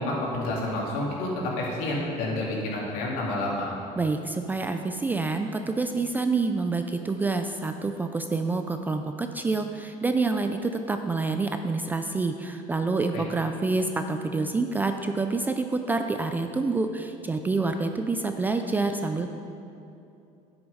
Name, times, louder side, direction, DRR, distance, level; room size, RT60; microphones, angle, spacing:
voice 1, 0.0-3.7 13.1-13.2, left 1 dB, 65° left, -4 dB, 2.9 m, -29 dB
voice 2, 4.0-19.3, right 3 dB, 10° right, 6 dB, 0.3 m, -27 dB
10.5 x 7.9 x 5.4 m, 2.7 s
cardioid pair, 160°, 15 cm